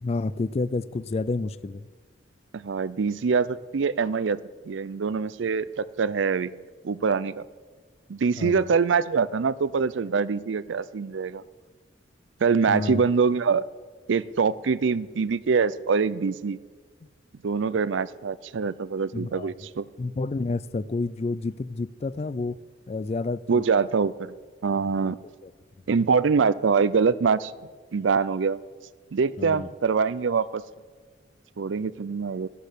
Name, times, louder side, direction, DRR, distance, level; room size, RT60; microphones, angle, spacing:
voice 1, 0.0-1.9 8.4-8.7 12.7-13.0 19.1-19.5 20.0-22.6 22.9-23.6 24.7-25.1 25.4-25.5 29.4-29.7, left 3 dB, 35° left, 17 dB, 0.4 m, -30 dB
voice 2, 2.5-4.4 4.7-6.5 6.8-7.4 8.1-11.4 12.4-13.6 14.1-16.6 17.4-19.9 23.5-24.3 24.6-25.2 25.9-27.5 27.9-28.6 29.1-30.6 31.6-32.5, right 5 dB, 75° right, 18 dB, 0.5 m, -24 dB
12.0 x 11.5 x 6.7 m, 1.4 s
head